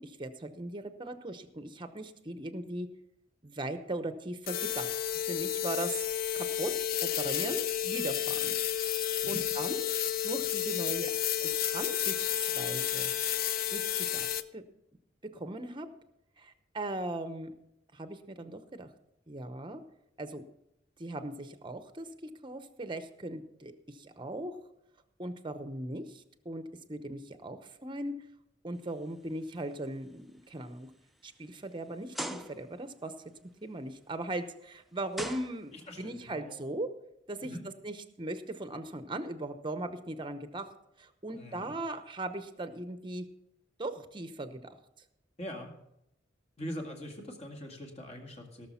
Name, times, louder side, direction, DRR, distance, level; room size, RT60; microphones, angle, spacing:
voice 1, 0.0-2.9 3.4-4.9 5.3-6.0 6.3-9.0 9.3-9.9 10.2-11.1 11.4-13.1 13.7-14.3 14.5-14.6 15.3-15.9 16.4-17.5 17.9-18.9 19.3-19.8 20.2-20.4 21.0-24.6 25.2-26.6 26.9-28.1 28.6-30.9 31.2-33.1 33.4-36.9 37.3-37.5 37.8-43.2 43.8-44.8, right 1 dB, 25° right, 10 dB, 0.9 m, -39 dB
sound 1, 4.5-14.4, left 11 dB, 50° left, 0.5 m, -31 dB
sound 2, 29.0-29.3 29.8-30.0 30.6-30.7 32.1-32.9 34.3-34.4 35.1-36.0, right 1 dB, ahead, 0.6 m, -40 dB
voice 2, 35.7-36.6 37.4-37.7 41.3-41.7 45.4-45.7 46.6-48.7, equal, 35° left, 3 dB, 2.1 m, -42 dB
17.0 x 6.6 x 5.7 m, 0.80 s
head